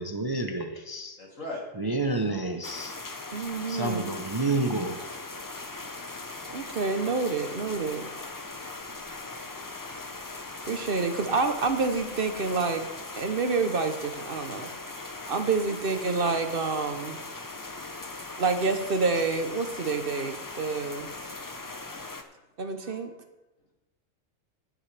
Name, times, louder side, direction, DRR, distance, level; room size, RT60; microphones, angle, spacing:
voice 1, 0.0-1.2 1.7-2.9 3.7-5.0, right 2 dB, 25° right, 5 dB, 0.6 m, -29 dB
voice 2, 1.2-1.6 10.0-10.1 15.7-16.1 18.2-18.3 22.8-22.9, left 2 dB, 85° left, -4 dB, 3.3 m, -41 dB
sound 1, 2.6-22.2, left 3 dB, 20° left, 0.5 m, -40 dB
voice 3, 3.3-4.1 6.5-8.1 10.7-12.9 13.2-14.7 15.3-17.2 18.4-21.1 22.6-23.1, right 4 dB, 50° right, 7 dB, 0.9 m, -28 dB
17.5 x 7.5 x 3.3 m, 1.0 s
omnidirectional pair, 1.3 m